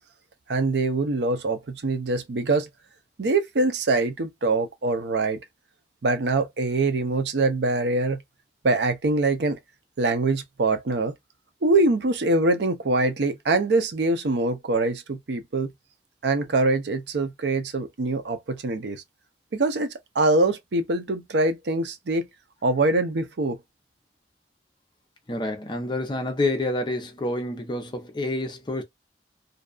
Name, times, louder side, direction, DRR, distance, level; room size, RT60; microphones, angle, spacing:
voice 1, 0.5-2.7 3.2-5.4 6.0-8.2 8.6-9.6 10.0-11.1 11.6-15.7 16.2-19.0 19.5-22.3 22.6-23.6, right 2 dB, 75° right, 0.5 m, -24 dB
voice 2, 25.3-28.8, left 2 dB, 25° left, 0.6 m, -28 dB
2.6 x 2.3 x 2.4 m
head